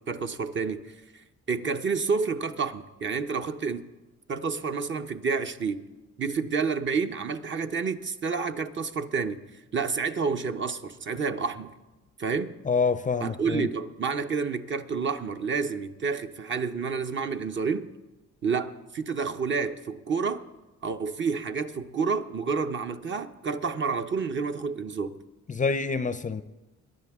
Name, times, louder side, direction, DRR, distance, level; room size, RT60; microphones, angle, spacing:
voice 1, 0.0-3.9 4.3-5.8 6.2-9.4 9.7-11.7 12.2-12.5 13.2-17.9 18.4-20.4 20.8-25.2, right 5 dB, 40° right, 0.8 m, -29 dB
voice 2, 12.6-13.7 25.5-26.4, left 5 dB, 25° left, 0.5 m, -26 dB
22.5 x 10.5 x 3.6 m
cardioid pair, 90°, 30 cm